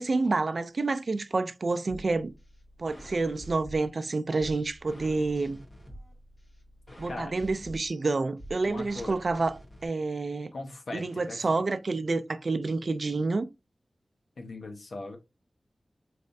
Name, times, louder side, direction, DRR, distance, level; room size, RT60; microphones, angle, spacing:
voice 1, 0.0-2.3 2.8-5.6 7.0-9.5 9.8-10.5 10.9-13.5, right 3 dB, 60° right, 0.4 m, -28 dB
sound 1, 1.9-9.9, equal, 45° left, 1.4 m, -48 dB
voice 2, 8.7-9.2 10.5-11.4 14.4-15.2, left 2 dB, 80° left, 0.9 m, -39 dB
4.2 x 3.2 x 2.6 m
wide cardioid pair, 75°, 0 cm